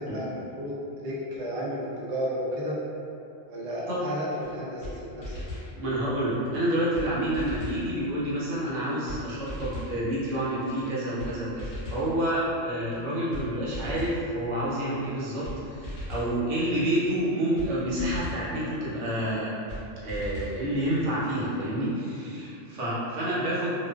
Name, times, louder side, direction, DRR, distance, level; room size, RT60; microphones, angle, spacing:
voice 1, 0.0-2.8 3.5-5.5 22.7-22.9, equal, 90° right, -6 dB, 0.3 m, -33 dB
sound 1, 4.4-4.5 4.8-4.9 5.2-5.7 6.5-6.6 6.9-7.1 7.3-7.8 8.7-8.8 9.1-9.2 9.5-10.0 10.8-10.9 11.2-11.3 11.6-12.1 12.9-13.0 13.3-13.4 13.7-14.2 15.0-15.1 15.4-15.6 15.8-16.3 17.2-17.3 17.6-17.7 18.0-18.4 19.3-19.4 19.7-19.8 20.1-20.6, left 1 dB, 70° left, 0.9 m, -37 dB
voice 2, 5.7-19.6 20.0-23.9, right 1 dB, 70° right, -8 dB, 1.0 m, -28 dB
2.4 x 2.4 x 2.3 m, 2.6 s
omnidirectional pair, 1.3 m